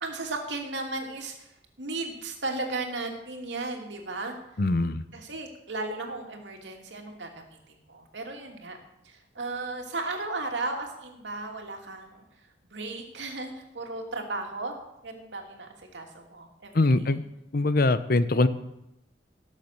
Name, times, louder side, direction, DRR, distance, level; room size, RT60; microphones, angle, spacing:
voice 1, 0.0-1.5 1.8-4.4 5.1-7.6 7.9-8.8 9.0-12.2 12.7-16.7, right 2 dB, 80° right, 2 dB, 2.6 m, -35 dB
voice 2, 4.6-5.0 16.7-17.2 17.5-18.5, left 2 dB, 55° left, 13 dB, 0.8 m, -22 dB
17.5 x 7.5 x 6.7 m, 0.86 s
head